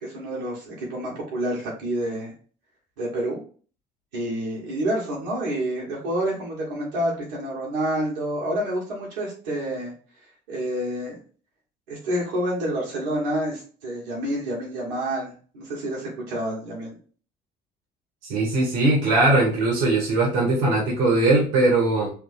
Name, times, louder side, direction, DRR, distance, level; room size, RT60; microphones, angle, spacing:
voice 1, 0.0-2.3 3.0-3.4 4.1-9.9 10.5-11.2 11.9-17.0, right 1 dB, 90° right, -5 dB, 1.6 m, -28 dB
voice 2, 18.3-22.1, right 2 dB, 70° right, -3 dB, 1.4 m, -20 dB
3.5 x 2.3 x 4.1 m, 0.41 s
hypercardioid pair, 65°, 21 cm